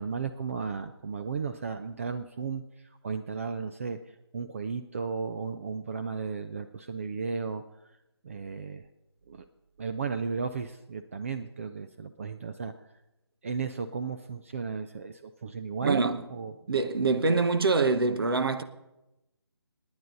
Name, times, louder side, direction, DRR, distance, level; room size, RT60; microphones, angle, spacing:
voice 1, 0.0-2.6 3.0-4.0 4.3-7.6 8.2-8.9 9.3-9.4 9.8-12.7 13.4-16.5, right 5 dB, 30° right, 0.5 m, -34 dB
voice 2, 15.8-16.2 16.7-18.6, right 3 dB, 60° right, 1.0 m, -25 dB
25.5 x 9.7 x 3.9 m
figure-of-eight pair, 155°, 14 cm